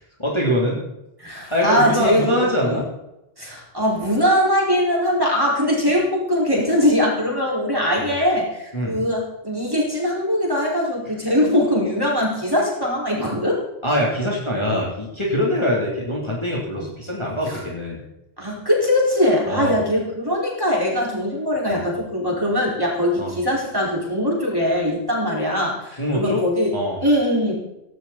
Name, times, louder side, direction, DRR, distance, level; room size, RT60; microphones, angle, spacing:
voice 1, 0.2-0.8 1.5-2.8 8.7-9.0 13.8-18.0 19.5-19.8 21.7-21.8 23.2-23.3 26.0-26.4 26.7-27.0, equal, 25° left, -3 dB, 3.2 m, -23 dB
voice 2, 1.2-2.8 3.4-13.6 16.7-16.9 17.5-17.6 18.4-26.7 27.0-27.5, left 1 dB, 20° right, -4 dB, 5.1 m, -21 dB
16.5 x 16.5 x 4.2 m, 0.88 s
omnidirectional pair, 1.1 m